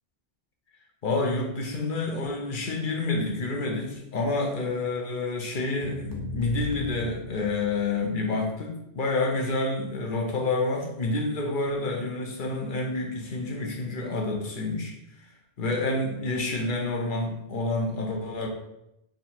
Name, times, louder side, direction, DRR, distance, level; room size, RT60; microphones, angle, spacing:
voice 1, 1.0-14.9 15.6-18.5, left 2 dB, 55° left, 0 dB, 0.9 m, -28 dB
sound 1, 5.8-8.1, left 1 dB, 25° left, 0.6 m, -38 dB
3.8 x 2.7 x 4.3 m, 0.85 s
omnidirectional pair, 1.0 m